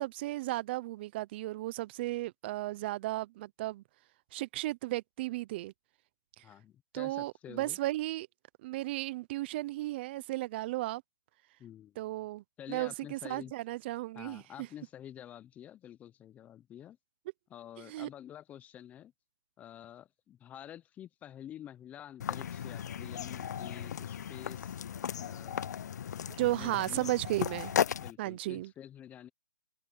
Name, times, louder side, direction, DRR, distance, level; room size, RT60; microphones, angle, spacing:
voice 1, 0.0-3.8 4.3-5.7 6.4-6.5 6.9-8.3 8.6-11.0 12.0-14.4 17.9-18.1 26.3-27.7 28.2-28.7, right 17 dB, 35° right, 0.9 m, -34 dB
voice 2, 6.4-7.8 11.6-12.1 12.6-13.5 14.1-17.0 17.5-19.1 19.6-24.8 25.2-25.8 26.6-27.1 27.4-27.6 28.0-29.3, left 10 dB, 15° left, 0.8 m, -49 dB
sound 1, 22.2-28.1, left 8 dB, 60° left, 0.5 m, -36 dB
hypercardioid pair, 145°, 10 cm